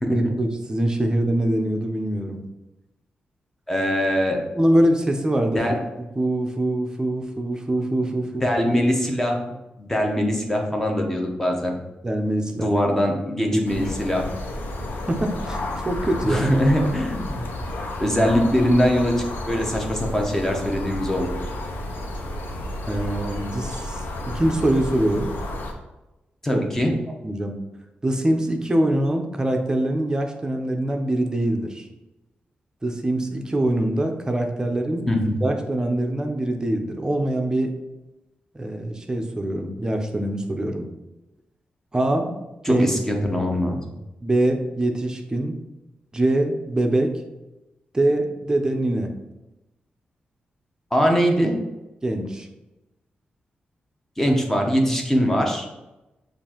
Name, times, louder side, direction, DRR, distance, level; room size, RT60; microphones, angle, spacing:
voice 1, 0.1-2.4 4.5-5.6 6.2-8.8 12.0-12.7 13.5-13.8 15.1-15.6 15.8-16.4 22.9-25.3 26.5-26.6 27.2-27.6 28.0-31.9 32.8-35.1 35.4-37.7 38.5-40.9 41.9-42.9 44.2-45.6 46.1-47.2 47.9-49.1 52.0-52.5, right 1 dB, 20° right, 4 dB, 0.6 m, -23 dB
voice 2, 3.7-4.4 5.5-5.8 8.4-11.7 12.5-14.3 16.2-17.5 18.0-21.4 26.4-26.9 35.1-35.4 42.6-43.7 50.9-51.5 54.2-55.7, equal, 10° left, 1 dB, 0.8 m, -22 dB
sound 1, 13.7-25.7, left 1 dB, 85° left, 0.6 m, -31 dB
6.7 x 2.6 x 2.9 m, 1.0 s
wide cardioid pair, 105°, 3 cm